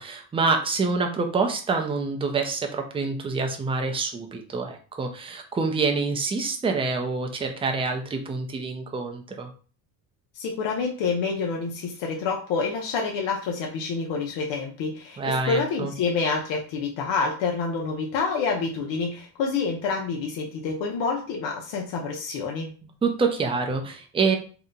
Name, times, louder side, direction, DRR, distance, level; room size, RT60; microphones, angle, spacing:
voice 1, 0.0-9.5 15.2-15.9 23.0-24.4, right 4 dB, 15° right, 4 dB, 0.4 m, -26 dB
voice 2, 10.3-22.7, left 4 dB, 70° left, 1 dB, 0.7 m, -28 dB
2.8 x 2.1 x 3.7 m, 0.39 s
cardioid pair, 115°, 46 cm